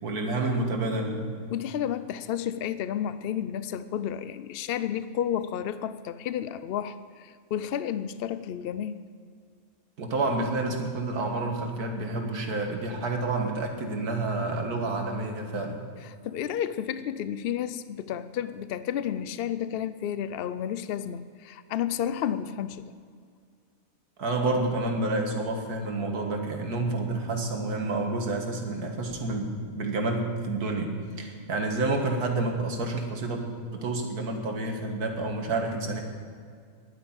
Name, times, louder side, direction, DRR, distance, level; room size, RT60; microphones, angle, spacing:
voice 1, 0.0-1.3 10.0-15.8 24.2-36.0, right 2 dB, 90° right, 3 dB, 2.1 m, -29 dB
voice 2, 1.5-9.1 16.0-22.9, left 9 dB, 80° left, 13 dB, 0.5 m, -31 dB
11.0 x 9.9 x 8.7 m, 2.2 s
omnidirectional pair, 1.6 m